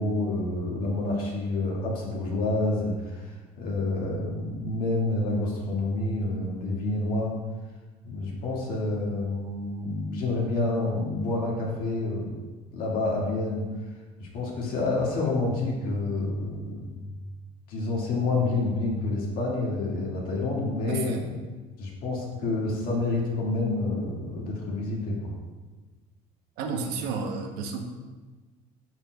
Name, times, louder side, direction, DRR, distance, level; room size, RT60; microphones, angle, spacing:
voice 1, 0.0-7.3 8.0-12.4 12.7-13.6 14.2-16.9 17.7-21.4 21.8-25.3, left 2 dB, 60° left, -3 dB, 2.0 m, -28 dB
voice 2, 26.6-27.8, right 4 dB, 75° right, 4 dB, 0.9 m, -31 dB
12.5 x 4.7 x 2.3 m, 1.3 s
cardioid pair, 145°, 16 cm